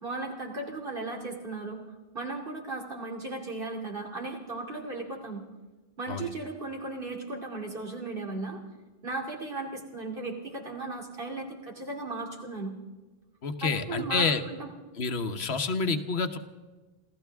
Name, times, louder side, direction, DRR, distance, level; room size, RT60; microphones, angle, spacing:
voice 1, 0.0-1.8 2.1-5.4 6.0-8.6 9.0-12.8 13.6-14.7, right 3 dB, 60° right, 1 dB, 2.8 m, -36 dB
voice 2, 13.4-14.4 15.0-16.4, left 4 dB, 85° left, 8 dB, 1.3 m, -28 dB
27.5 x 15.0 x 3.5 m, 1.2 s
omnidirectional pair, 1.0 m